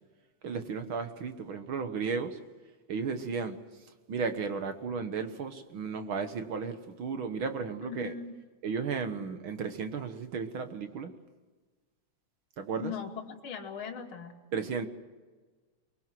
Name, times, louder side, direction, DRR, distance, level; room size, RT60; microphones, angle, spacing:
voice 1, 0.4-2.4 2.9-3.6 4.1-8.1 8.6-11.1 12.6-12.9 14.5-14.9, right 5 dB, 55° right, 8 dB, 1.6 m, -34 dB
voice 2, 7.8-8.3 12.8-14.4, left 6 dB, 45° left, 1 dB, 3.0 m, -39 dB
23.0 x 23.0 x 7.7 m, 1.4 s
omnidirectional pair, 3.5 m